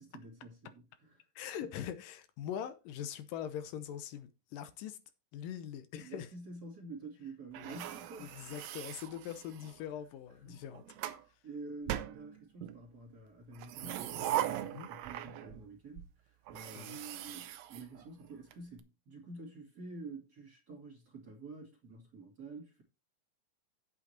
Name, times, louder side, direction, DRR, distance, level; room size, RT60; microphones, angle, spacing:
voice 1, 0.0-1.7 6.0-8.3 9.9-10.0 10.3-10.6 11.4-22.8, right 3 dB, 30° right, 2.7 m, -49 dB
voice 2, 1.4-5.0 5.3-6.3 7.6-7.8 8.2-10.8 14.7-14.9 16.7-17.0, left 9 dB, 80° left, 2.5 m, -42 dB
sound 1, 7.5-9.8 10.6-11.2 11.9-12.8 13.5-15.7 16.0-16.1 16.5-18.5, right 12 dB, 75° right, 1.6 m, -40 dB
8.5 x 8.2 x 4.4 m
omnidirectional pair, 3.9 m